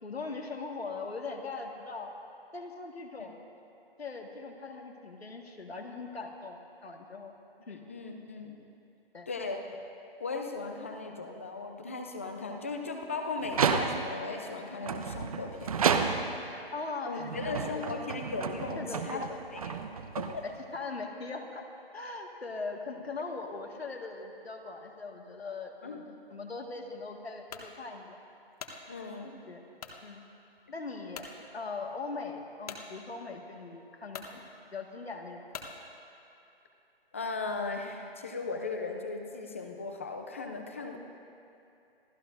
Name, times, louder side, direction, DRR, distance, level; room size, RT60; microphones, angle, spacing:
voice 1, 0.0-2.1 2.5-3.4 4.0-7.3 7.7-7.8 9.1-9.3 16.4-18.0 18.8-19.4 20.4-21.6 21.9-26.0 26.3-28.2 29.5-29.6 30.0-30.2 30.7-31.3 31.5-34.5 34.7-35.4, left 3 dB, 80° left, 2 dB, 1.9 m, -40 dB
voice 2, 7.7-8.6 9.3-9.6 10.2-15.8 17.1-19.8 20.2-20.4 25.8-26.0 28.9-29.4 37.1-41.0, left 3 dB, 15° left, 4 dB, 0.5 m, -37 dB
sound 1, 13.4-14.3 14.8-16.5 17.2-20.8, right 6 dB, 35° right, 0.8 m, -31 dB
sound 2, 27.5-27.7 28.3-28.8 29.8-30.0 30.6-30.7 31.1-31.3 32.7-32.9 33.6-33.7 34.1-34.3 35.5-35.8, left 6 dB, 40° left, 1.2 m, -43 dB
27.0 x 14.5 x 2.6 m, 2.7 s
figure-of-eight pair, 155°, 31 cm